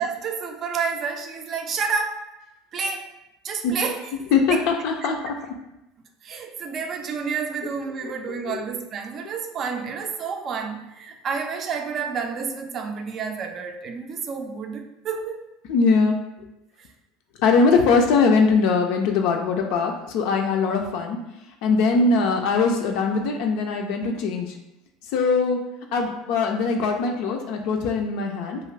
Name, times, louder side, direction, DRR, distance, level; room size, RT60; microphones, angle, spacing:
voice 1, 0.0-2.2 2.7-3.1 3.4-4.0 4.5-4.6 6.2-15.4, right 5 dB, 45° right, 5 dB, 0.4 m, -29 dB
voice 2, 4.3-5.3 8.0-8.1 8.4-8.7 15.7-16.3 17.4-21.2 21.6-24.5 25.1-25.6 25.9-28.6, left 4 dB, 65° left, 2 dB, 0.3 m, -21 dB
2.4 x 2.3 x 3.2 m, 0.93 s
hypercardioid pair, 80°, 0 cm